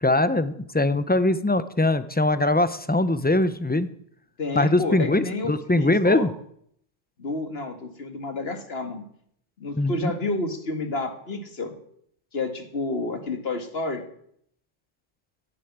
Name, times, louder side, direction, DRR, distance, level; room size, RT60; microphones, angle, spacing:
voice 1, 0.0-3.9 4.5-6.3 9.8-10.1, left 2 dB, 15° left, 13 dB, 0.4 m, -22 dB
voice 2, 4.4-6.3 7.2-9.0 9.6-11.8 12.3-14.0, left 2 dB, 50° left, 6 dB, 2.0 m, -30 dB
11.0 x 10.0 x 9.4 m, 0.68 s
omnidirectional pair, 1.3 m